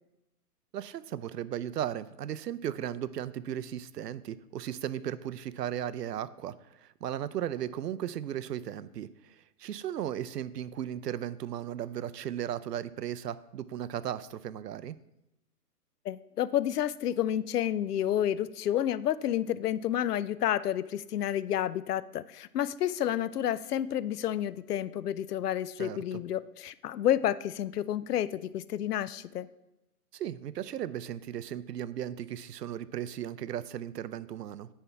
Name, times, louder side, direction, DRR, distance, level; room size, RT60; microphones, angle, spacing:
voice 1, 0.7-15.0 25.8-26.0 30.1-34.7, right 10 dB, 80° right, 16 dB, 0.6 m, -36 dB
voice 2, 16.1-29.5, left 11 dB, 75° left, 18 dB, 0.5 m, -30 dB
9.9 x 3.5 x 5.6 m, 0.91 s
hypercardioid pair, 170°, 48 cm